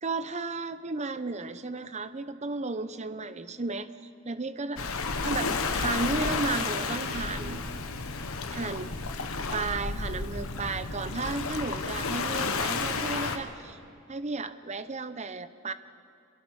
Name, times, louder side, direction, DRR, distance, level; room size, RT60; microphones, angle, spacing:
voice 1, 0.0-3.9 4.2-4.8 5.2-7.6 8.5-8.9 9.5-13.8 14.1-15.7, right 3 dB, 30° right, 13 dB, 0.7 m, -33 dB
Waves surf, 4.8-13.4, left 4 dB, 65° left, 1.3 m, -31 dB
27.5 x 21.0 x 4.8 m, 2.5 s
head